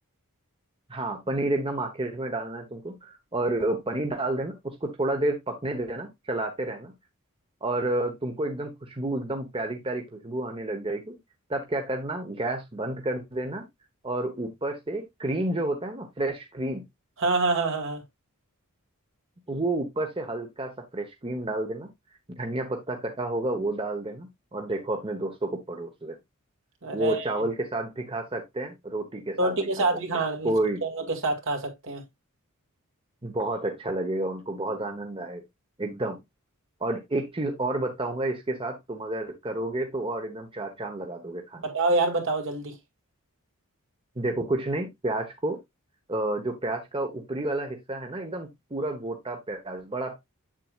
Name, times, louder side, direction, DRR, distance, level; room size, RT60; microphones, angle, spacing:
voice 1, 0.9-6.9 7.6-11.2 11.5-13.7 14.0-16.9 19.5-21.9 22.4-26.2 26.9-29.8 30.4-30.8 33.2-35.4 35.8-36.2 36.8-41.7 44.2-45.6 46.1-50.2, right 2 dB, 25° right, 1.1 m, -30 dB
voice 2, 17.2-18.0 26.8-27.2 29.4-30.5 30.8-32.0 41.6-42.7, right 3 dB, 60° right, 2.2 m, -26 dB
7.8 x 7.5 x 2.4 m
head